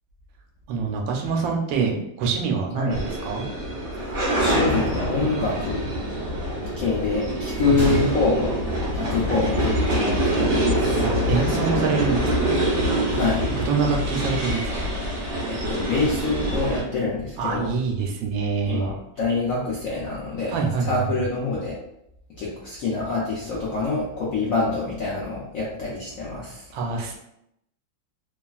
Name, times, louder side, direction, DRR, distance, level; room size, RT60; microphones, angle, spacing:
voice 1, 0.7-3.8 7.6-8.1 11.0-12.6 13.7-14.9 17.4-18.9 20.5-21.0 26.7-27.2, right 5 dB, 85° right, 1 dB, 1.3 m, -26 dB
sound 1, 2.9-16.8, right 1 dB, 50° right, 0.9 m, -25 dB
voice 2, 4.3-5.9 6.8-8.6 8.9-11.1 13.1-13.4 15.5-17.7 18.7-20.5 20.9-21.7 22.4-26.6, left 3 dB, 70° left, -6 dB, 0.8 m, -26 dB
Gunshot gunfire, 7.8-9.8 10.1-10.2 10.9-11.1, right 1 dB, 15° right, 0.4 m, -33 dB
3.2 x 2.4 x 2.3 m, 0.79 s
omnidirectional pair, 2.1 m